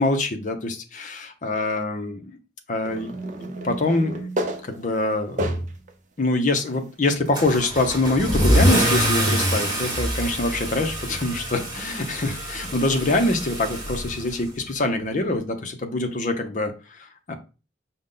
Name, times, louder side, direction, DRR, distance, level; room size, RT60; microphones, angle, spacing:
voice 1, 0.0-2.4 2.7-4.3 4.6-5.7 6.2-17.4, left 2 dB, 45° left, 6 dB, 0.6 m, -25 dB
sound 1, 2.8-5.9 6.5-6.6 8.0-8.1, right 1 dB, 40° right, 0.5 m, -31 dB
Car / Engine starting / Accelerating revving vroom, 7.3-14.7, equal, 20° right, 1.3 m, -25 dB
5.1 x 2.1 x 3.7 m, 0.32 s
head